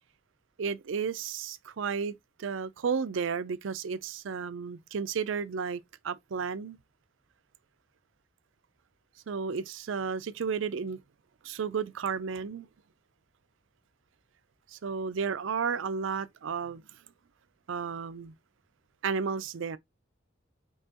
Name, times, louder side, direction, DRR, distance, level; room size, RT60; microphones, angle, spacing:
voice 1, 0.6-6.8 9.3-11.0 11.4-12.7 14.7-16.8 17.7-18.3 19.0-19.8, right 6 dB, 75° right, 0.4 m, -33 dB
5.5 x 2.9 x 2.8 m
head